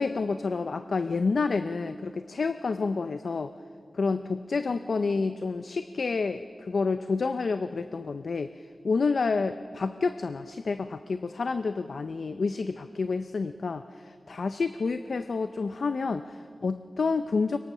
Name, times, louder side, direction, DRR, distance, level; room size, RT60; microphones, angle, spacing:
voice 1, 0.0-3.5 3.9-8.5 8.8-17.6, left 4 dB, 70° left, 10 dB, 0.6 m, -29 dB
23.5 x 22.5 x 6.2 m, 2.3 s
wide cardioid pair, 70°, 0 cm